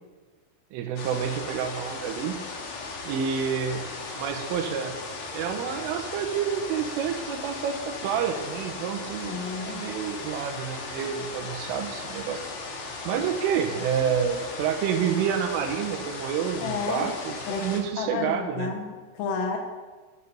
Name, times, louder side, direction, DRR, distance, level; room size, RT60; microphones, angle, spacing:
voice 1, 0.7-2.4 3.0-3.8 4.2-4.9 5.3-9.4 9.7-12.4 13.1-18.7, right 8 dB, 80° right, 6 dB, 3.5 m, -29 dB
sound 1, 1.0-17.8, left 3 dB, 60° left, 1.9 m, -37 dB
voice 2, 9.3-9.8 13.1-13.3 16.6-17.1 17.5-19.6, left 5 dB, 85° left, 3 dB, 4.0 m, -31 dB
12.0 x 10.0 x 6.8 m, 1.4 s
omnidirectional pair, 5.8 m